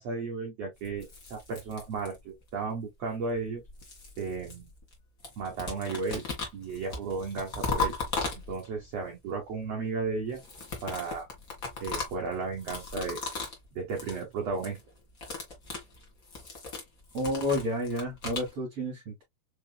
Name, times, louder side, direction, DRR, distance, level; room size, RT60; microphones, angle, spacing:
voice 1, 0.0-3.6 4.2-4.7 5.4-6.2 6.5-7.9 8.5-10.4 10.8-11.3 11.8-13.2 13.7-14.8, right 4 dB, 90° right, 1.4 m, -34 dB
sound 1, 0.8-2.4 3.3-4.9 5.2-8.9 10.3-13.6 13.9-14.2 14.5-14.8 15.1-18.5, left 4 dB, 80° left, 0.7 m, -37 dB
voice 2, 17.1-19.2, left 1 dB, 50° right, 2.2 m, -30 dB
6.0 x 2.9 x 2.2 m
omnidirectional pair, 4.6 m